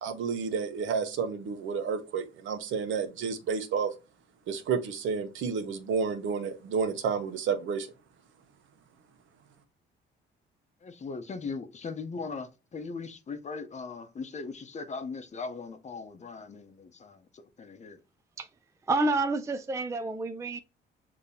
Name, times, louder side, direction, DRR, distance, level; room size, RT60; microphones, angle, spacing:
voice 1, 0.0-3.9 4.5-7.9, right 6 dB, 75° right, 1.0 m, -30 dB
voice 2, 10.8-18.0, left 4 dB, 35° left, 0.7 m, -39 dB
voice 3, 18.9-20.6, right 2 dB, 15° right, 0.4 m, -28 dB
6.6 x 2.9 x 2.7 m
cardioid pair, 90°, 20 cm